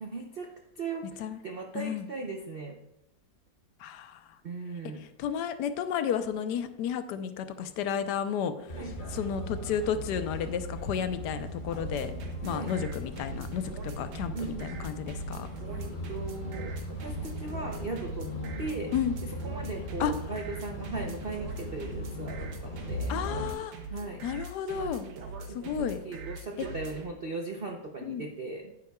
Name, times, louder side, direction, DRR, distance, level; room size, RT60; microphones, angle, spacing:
voice 1, 0.0-2.8 4.4-5.0 8.8-8.9 12.4-12.9 14.3-14.8 15.6-18.3 18.6-18.9 19.2-23.2 23.9-24.2 25.5-28.7, right 3 dB, 55° right, 2 dB, 0.6 m, -38 dB
voice 2, 3.8-4.2 5.2-8.5 9.1-12.1 12.4-13.6 14.0-14.3 14.6-15.5 18.9-19.2 20.0-20.1 23.1-23.7 24.2-25.1 25.5-26.0 28.0-28.3, left 8 dB, 70° left, 10 dB, 1.2 m, -32 dB
sound 1, 8.7-23.5, equal, 35° left, 0.9 m, -38 dB
sound 2, 11.7-27.1, right 3 dB, 85° right, 1.7 m, -42 dB
11.0 x 9.4 x 2.3 m, 0.87 s
omnidirectional pair, 2.0 m